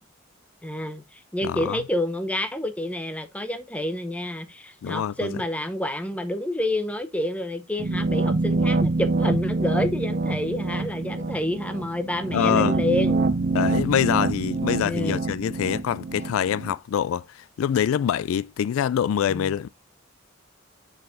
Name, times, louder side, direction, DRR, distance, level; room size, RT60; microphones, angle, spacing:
voice 1, 0.6-13.3 14.8-15.2 19.3-19.6, left 1 dB, 5° left, 0.7 m, -29 dB
voice 2, 1.4-1.8 4.8-5.3 12.3-12.8 13.5-19.7, left 9 dB, 80° left, 0.3 m, -25 dB
sound 1, 7.8-16.7, right 3 dB, 45° right, 0.6 m, -25 dB
6.5 x 4.8 x 3.5 m
head